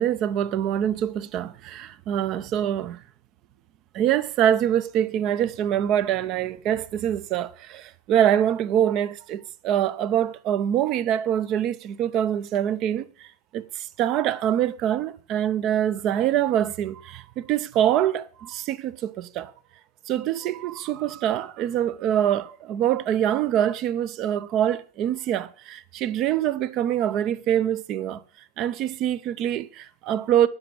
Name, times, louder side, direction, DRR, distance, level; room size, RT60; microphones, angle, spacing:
voice 1, 0.0-3.0 3.9-13.0 13.5-13.6 14.0-19.5 20.1-28.2 28.6-30.5, right 10 dB, 35° right, 0.7 m, -24 dB
10.5 x 6.0 x 6.9 m
figure-of-eight pair, 90°, 0 cm